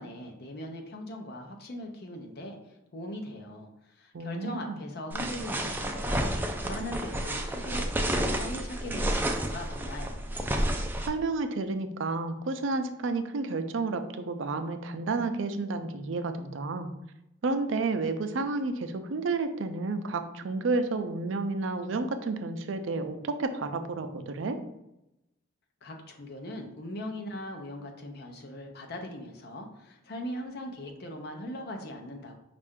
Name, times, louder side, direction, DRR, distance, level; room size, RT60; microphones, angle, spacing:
voice 1, 0.0-10.4 25.8-32.4, left 1 dB, 55° left, 3 dB, 0.6 m, -40 dB
voice 2, 4.1-4.8 11.1-16.9 17.4-24.6, right 3 dB, 80° right, 8 dB, 0.5 m, -31 dB
sound 1, 5.1-11.1, right 1 dB, 10° right, 0.4 m, -30 dB
5.4 x 2.5 x 3.5 m, 0.88 s
head